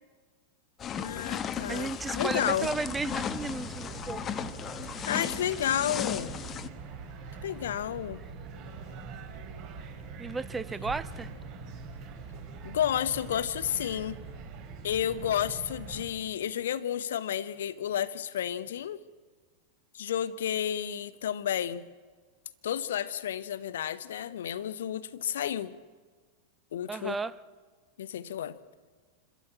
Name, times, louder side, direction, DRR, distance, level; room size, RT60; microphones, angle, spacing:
sound 1, 0.8-6.7, left 8 dB, 25° left, 1.1 m, -35 dB
voice 1, 0.9-2.7 5.1-6.3 7.4-8.2 12.6-14.2 14.8-19.0 19.9-21.8 22.6-25.8 26.7-27.2 28.0-28.6, left 10 dB, 60° left, 0.9 m, -31 dB
voice 2, 1.7-4.2 10.2-11.3 26.9-27.3, right 4 dB, 15° right, 0.8 m, -34 dB
sound 2, 2.5-16.1, right 4 dB, 40° right, 4.4 m, -43 dB
28.0 x 13.0 x 8.5 m
figure-of-eight pair, 90°, 0 cm